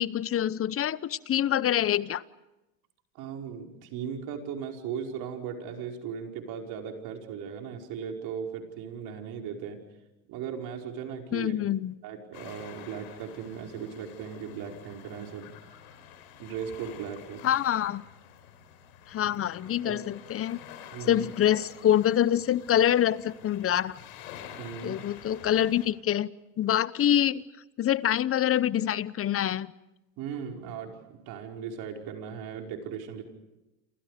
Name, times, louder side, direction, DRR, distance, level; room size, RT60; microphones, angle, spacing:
voice 1, 0.0-2.2 11.3-11.9 17.4-18.0 19.1-20.6 21.0-24.0 24.8-26.3 26.6-27.4 27.8-29.7, left 11 dB, 35° left, 19 dB, 0.9 m, -25 dB
voice 2, 3.2-9.8 10.3-11.5 12.0-15.5 16.4-17.5 19.2-19.3 19.8-20.0 20.9-21.3 24.6-25.0 30.2-33.2, right 7 dB, 65° right, 2 dB, 5.4 m, -37 dB
sound 1, 12.3-25.9, left 9 dB, 80° left, 4.6 m, -48 dB
28.5 x 28.0 x 5.1 m, 0.97 s
supercardioid pair, 100°, 40 cm